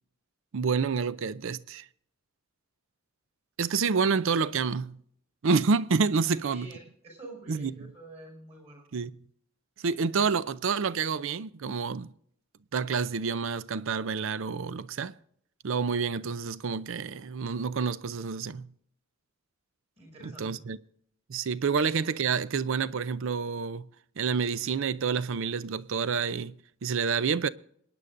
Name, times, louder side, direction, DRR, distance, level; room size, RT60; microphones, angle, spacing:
voice 1, 0.5-1.9 3.6-5.0 5.4-6.7 7.5-7.7 8.9-9.1 9.8-12.1 12.7-15.1 15.6-18.7 20.2-20.8 21.3-23.9 24.2-27.5, right 5 dB, 60° right, 0.5 m, -28 dB
voice 2, 6.2-8.9 20.0-20.6, right 2 dB, 30° right, 6.0 m, -47 dB
27.0 x 9.8 x 2.6 m
head